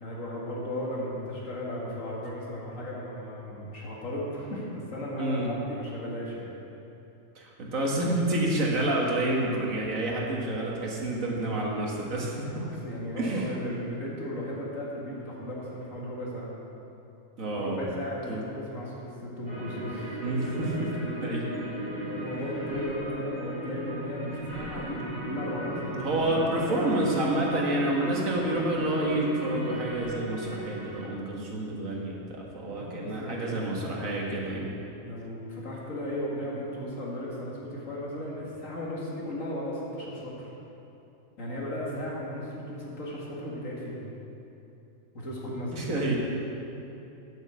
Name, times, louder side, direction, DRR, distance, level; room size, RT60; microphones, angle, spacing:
voice 1, 0.0-6.5 12.4-16.5 17.6-20.2 21.8-26.1 26.6-26.8 32.7-33.8 35.0-40.5 41.4-44.0 45.1-45.8, left 1 dB, 75° left, -5 dB, 2.5 m, -36 dB
voice 2, 5.2-5.5 7.4-12.5 13.2-13.5 17.4-18.0 18.3-18.4 20.2-20.7 21.2-21.4 26.0-34.7 45.7-46.2, right 1 dB, 85° right, -2 dB, 2.0 m, -29 dB
sound 1, 19.5-31.1, right 1 dB, 30° right, 2.2 m, -36 dB
8.9 x 8.0 x 7.0 m, 2.9 s
omnidirectional pair, 1.4 m